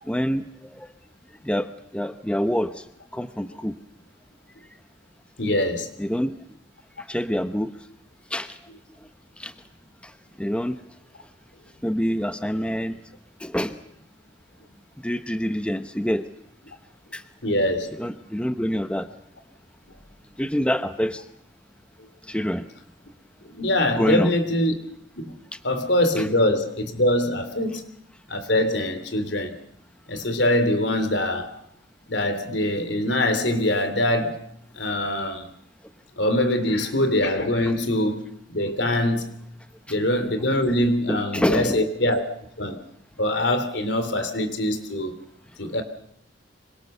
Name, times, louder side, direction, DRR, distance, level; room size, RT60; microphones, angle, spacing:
voice 1, 0.1-0.4 0.7-0.9 1.4-2.8 3.1-3.7 6.0-6.4 7.0-7.7 8.3-8.6 9.4-9.5 10.0-10.1 10.4-10.8 11.8-13.0 13.4-13.8 15.0-16.2 17.1-17.2 18.0-19.1 20.4-21.2 22.3-22.7 24.0-24.3 26.2-26.3 41.1-41.8, equal, 5° left, 0.9 m, -26 dB
voice 2, 5.4-6.0 17.4-18.0 23.4-24.7 25.2-25.4 25.6-27.8 28.3-29.6 30.1-31.6 32.1-34.4 34.7-35.5 36.2-39.3 39.9-42.2 42.6-42.8 43.2-45.2 45.6-45.8, left 1 dB, 70° left, 3.4 m, -23 dB
26.0 x 24.0 x 6.9 m
head